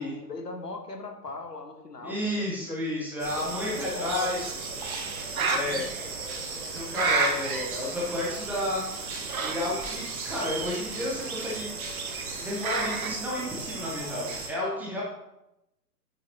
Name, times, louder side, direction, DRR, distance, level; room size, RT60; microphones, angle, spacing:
voice 1, 0.0-2.9 3.4-4.6 5.3-5.8, left 3 dB, 70° left, 4 dB, 1.6 m, -40 dB
voice 2, 2.0-4.6 5.5-5.9 6.7-8.8 9.4-11.7 12.3-15.0, left 1 dB, 5° right, -5 dB, 0.7 m, -31 dB
sound 1, 3.2-14.5, right 4 dB, 30° right, 1.6 m, -37 dB
Bird, 3.3-13.1, right 4 dB, 60° right, 1.3 m, -34 dB
9.0 x 8.8 x 3.0 m, 0.90 s
figure-of-eight pair, 120°, 50 cm